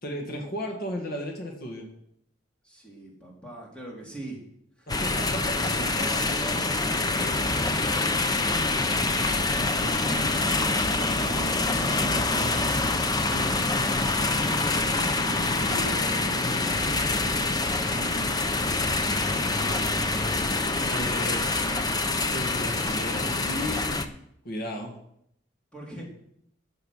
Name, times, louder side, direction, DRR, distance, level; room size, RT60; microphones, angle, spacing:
voice 1, 0.0-1.9 4.9-6.1 16.3-16.8 20.9-21.4 22.3-24.2 24.4-25.0, equal, 55° left, 2 dB, 1.9 m, -34 dB
voice 2, 2.6-4.4 4.8-4.9 6.0-8.1 8.6-12.7 13.1-18.1 19.1-21.1 25.7-26.0, right 1 dB, 5° left, -3 dB, 3.4 m, -42 dB
sound 1, 4.9-24.1, left 2 dB, 20° left, 0.7 m, -26 dB
14.5 x 6.6 x 6.4 m, 0.73 s
head